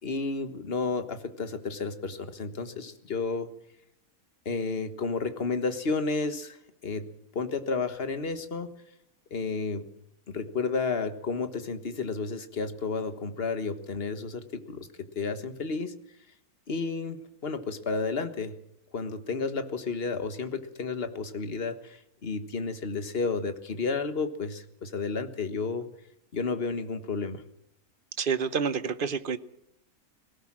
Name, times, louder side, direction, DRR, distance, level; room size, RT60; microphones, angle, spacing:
voice 1, 0.0-3.5 4.4-7.1 7.3-8.7 9.3-9.9 10.3-15.9 16.7-18.6 18.9-25.9 26.3-27.4, left 4 dB, 45° left, 9 dB, 1.6 m, -32 dB
voice 2, 28.2-29.4, right 6 dB, 45° right, 14 dB, 1.0 m, -28 dB
19.5 x 18.0 x 7.4 m, 0.74 s
omnidirectional pair, 1.5 m